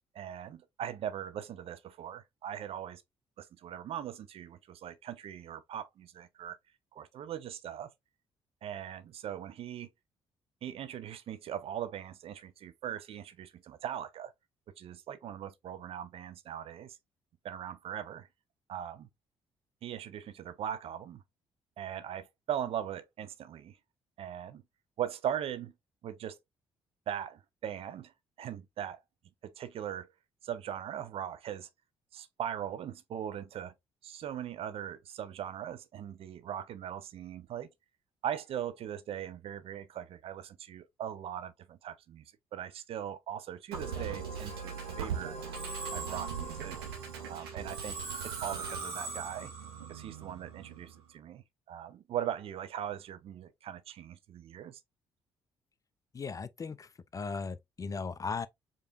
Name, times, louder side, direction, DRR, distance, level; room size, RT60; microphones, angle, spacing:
voice 1, 0.1-3.0 3.4-6.6 6.9-7.9 8.6-9.9 10.6-14.3 14.7-17.0 17.4-18.3 18.7-19.1 19.8-21.2 21.8-23.8 24.2-24.6 25.0-25.7 26.0-26.4 27.1-29.0 29.4-30.1 30.4-31.7 32.1-33.7 34.0-37.7 38.2-42.2 42.5-45.4 45.9-46.8 47.3-49.5 49.9-54.8, right 10 dB, 50° right, 0.5 m, -40 dB
Musical instrument, 43.7-51.0, right 5 dB, 75° right, 1.1 m, -39 dB
voice 2, 56.1-58.5, left 5 dB, 25° left, 0.4 m, -37 dB
4.8 x 2.9 x 2.4 m
figure-of-eight pair, 45°, 13 cm